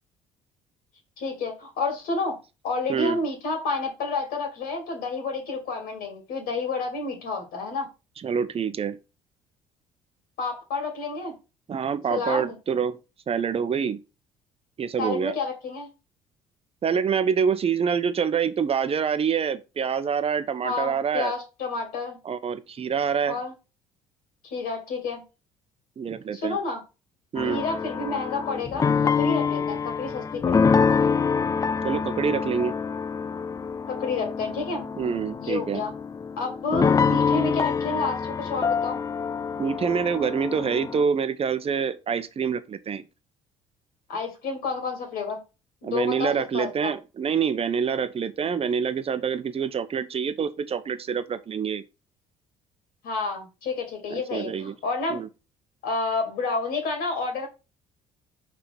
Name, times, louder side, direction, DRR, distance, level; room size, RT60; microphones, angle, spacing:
voice 1, 1.2-2.4 2.6-7.9 10.4-11.3 12.1-12.6 15.0-15.9 20.6-22.2 23.2-23.5 24.4-25.2 26.3-26.8 27.4-30.7 33.9-34.9 35.4-35.9 36.4-39.0 44.1-45.4 45.8-46.9 53.0-55.2 55.8-57.5, left 3 dB, 65° left, 2.6 m, -30 dB
voice 2, 8.2-9.0 11.7-13.0 13.3-14.0 14.8-15.3 16.8-21.3 22.2-23.4 26.0-26.6 27.3-27.6 31.8-32.7 35.0-35.8 39.6-43.0 45.8-51.8 54.1-54.7 55.1-55.3, right 6 dB, 35° right, 0.9 m, -26 dB
sound 1, 27.4-41.0, left 5 dB, 20° left, 0.3 m, -26 dB
5.9 x 3.8 x 5.1 m
hypercardioid pair, 55°, 17 cm